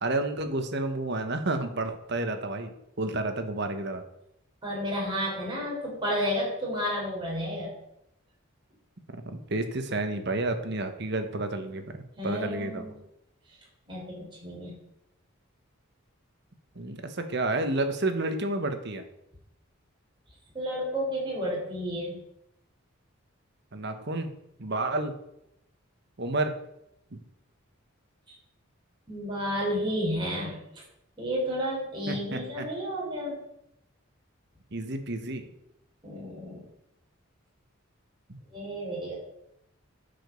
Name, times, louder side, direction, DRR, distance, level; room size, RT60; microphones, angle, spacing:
voice 1, 0.0-4.0 9.1-11.8 12.2-12.9 16.7-19.0 23.7-24.3 24.6-25.1 26.2-26.5 27.1-27.2 32.1-32.7 34.7-35.5 38.3-38.4, right 2 dB, 55° right, 7 dB, 1.2 m, -30 dB
voice 2, 4.6-7.7 12.2-13.0 13.9-14.7 20.5-22.2 29.1-30.6 31.2-33.4 36.0-36.6 38.5-39.1, equal, 20° right, -4 dB, 4.4 m, -31 dB
10.0 x 5.2 x 6.9 m, 0.81 s
head